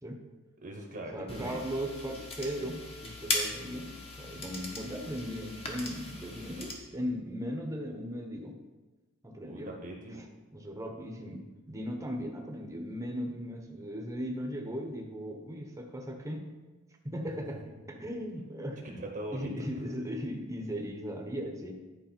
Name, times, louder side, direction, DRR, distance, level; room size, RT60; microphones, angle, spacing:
voice 1, 0.6-1.6 9.5-10.3 17.9-18.0 18.8-19.5, right 1 dB, 40° right, 1 dB, 1.0 m, -41 dB
voice 2, 1.1-8.6 9.2-9.7 10.5-16.5 17.0-19.0 19.3-21.7, equal, 15° right, 2 dB, 0.9 m, -37 dB
sound 1, 1.3-6.7, left 2 dB, 30° left, 1.2 m, -38 dB
10.5 x 4.7 x 4.4 m, 1.2 s
head